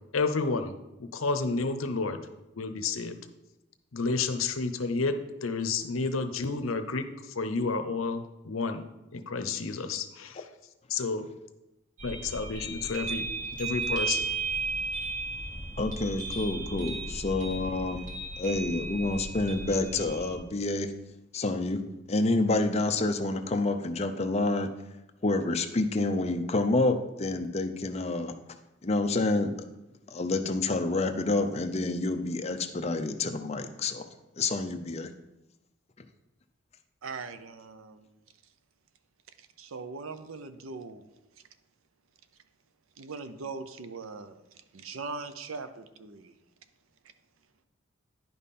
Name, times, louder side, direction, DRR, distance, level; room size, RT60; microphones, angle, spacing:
voice 1, 0.1-0.7 1.0-2.2 2.6-3.2 3.9-7.1 7.4-8.8 9.1-10.5 10.9-11.3 12.0-13.3 13.6-14.3, left 4 dB, 85° left, 9 dB, 0.7 m, -30 dB
sound 1, 12.0-20.4, right 3 dB, 40° right, 1.7 m, -35 dB
voice 2, 15.8-18.1 18.4-20.9 21.3-21.8 22.1-24.7 25.2-28.3 28.8-29.5 30.1-34.1 34.4-35.1, left 2 dB, 30° left, 6 dB, 0.6 m, -28 dB
voice 3, 37.0-38.1 39.4-41.1 43.0-46.3, right 4 dB, 90° right, 10 dB, 0.6 m, -41 dB
10.5 x 5.4 x 4.2 m, 0.96 s
head